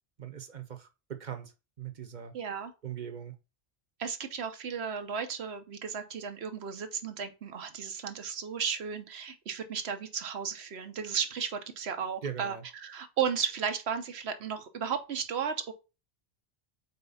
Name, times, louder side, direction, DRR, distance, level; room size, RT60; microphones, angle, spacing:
voice 1, 0.2-2.3 2.8-3.3 12.2-12.6, right 8 dB, 50° right, 0.9 m, -40 dB
voice 2, 2.3-2.7 4.0-15.7, right 7 dB, 85° right, 1.1 m, -34 dB
4.4 x 4.1 x 5.5 m
omnidirectional pair, 1.0 m